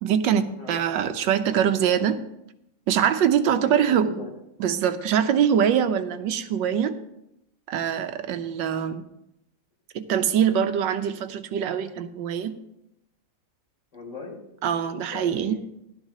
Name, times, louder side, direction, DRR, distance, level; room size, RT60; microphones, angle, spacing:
voice 1, 0.0-2.2 2.9-4.1 4.6-6.9 7.7-9.0 9.9-12.6 14.6-15.5, right 8 dB, 80° right, 9 dB, 1.4 m, -23 dB
voice 2, 3.4-4.3 13.9-14.3 15.1-15.6, left 2 dB, 70° left, -3 dB, 4.6 m, -37 dB
15.0 x 12.0 x 2.8 m, 0.83 s
omnidirectional pair, 1.9 m